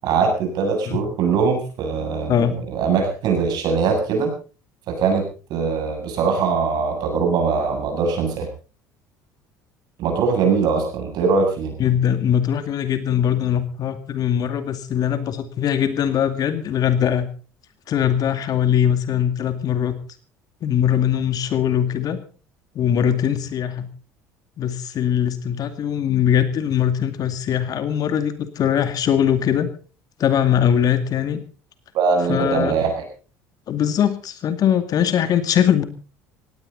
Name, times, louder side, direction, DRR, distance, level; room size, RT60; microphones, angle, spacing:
voice 1, 0.0-4.3 4.9-5.2 5.5-8.5 10.0-11.8 31.9-33.0, right 5 dB, 60° right, 4 dB, 7.7 m, -21 dB
voice 2, 11.8-17.3 17.9-19.9 20.6-22.2 22.7-23.9 24.6-29.7 30.2-31.4 32.3-32.7 33.7-35.8, left 9 dB, 50° left, 10 dB, 2.4 m, -21 dB
18.0 x 17.0 x 4.1 m, 0.36 s
hypercardioid pair, 70°, 8 cm